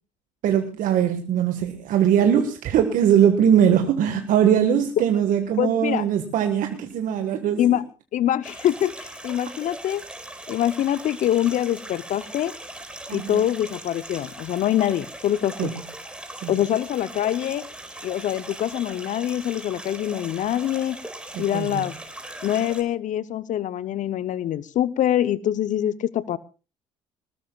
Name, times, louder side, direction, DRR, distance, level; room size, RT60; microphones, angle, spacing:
voice 1, 0.4-7.8 13.1-13.4 15.6-15.7 16.4-16.5 21.3-21.8, right 9 dB, 60° right, 7 dB, 1.5 m, -21 dB
voice 2, 5.6-6.0 7.6-7.8 8.1-10.0 10.5-12.5 13.1-15.7 16.5-17.7 18.0-21.0 21.4-21.9 22.4-26.4, left 11 dB, 55° left, 18 dB, 0.7 m, -24 dB
sound 1, 8.4-22.8, right 1 dB, 5° right, 4.3 m, -40 dB
21.0 x 19.5 x 2.3 m, 0.33 s
hypercardioid pair, 55°, 15 cm